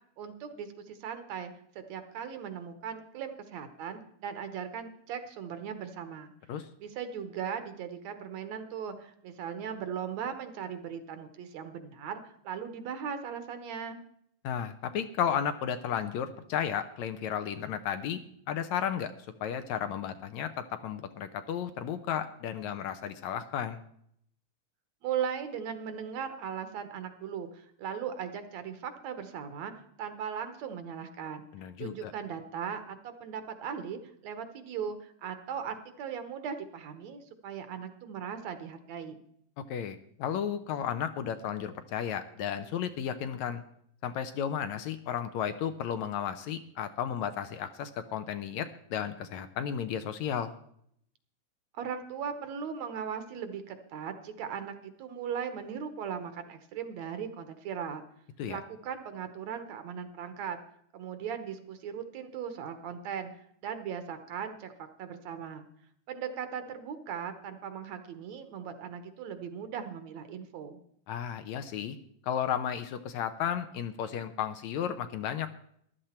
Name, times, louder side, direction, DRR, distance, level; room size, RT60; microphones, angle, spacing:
voice 1, 0.2-6.3 6.8-14.0 25.0-29.7 30.0-31.5 31.8-39.2 51.7-58.0 58.5-60.6 60.9-63.3 63.6-64.7 65.0-65.7 66.1-70.8, right 7 dB, 65° right, 9 dB, 2.1 m, -38 dB
voice 2, 14.4-18.2 18.5-19.1 19.4-23.8 31.5-32.1 39.7-43.6 44.0-50.5 58.4-58.6 71.1-72.0 72.2-75.5, left 8 dB, 75° left, 10 dB, 1.9 m, -33 dB
14.5 x 12.0 x 4.4 m, 0.68 s
omnidirectional pair, 3.6 m